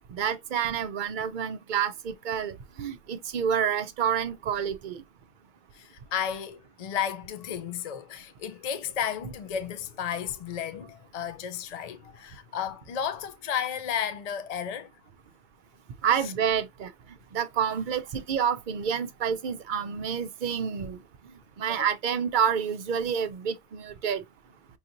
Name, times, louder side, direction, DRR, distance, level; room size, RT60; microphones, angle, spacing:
voice 1, 0.0-5.0 16.0-16.9 17.3-21.0 21.6-24.2, right 8 dB, 55° right, 0.6 m, -28 dB
voice 2, 5.7-14.9 16.2-16.3 21.7-21.9, left 8 dB, 55° left, 0.4 m, -33 dB
5.6 x 2.7 x 2.6 m
omnidirectional pair, 1.2 m